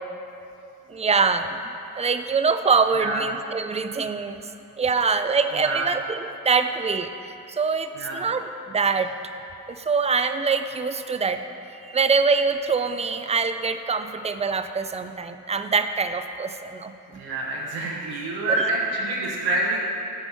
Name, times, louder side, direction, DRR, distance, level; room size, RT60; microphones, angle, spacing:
voice 1, 0.9-4.5 4.8-9.1 9.7-11.5 11.8-16.9 18.5-18.6, right 5 dB, 20° right, 9 dB, 0.3 m, -24 dB
voice 2, 5.6-6.0 7.9-8.3 17.1-19.8, right 2 dB, 85° right, -3 dB, 0.9 m, -27 dB
7.0 x 4.5 x 5.5 m, 2.9 s
cardioid pair, 70°, 37 cm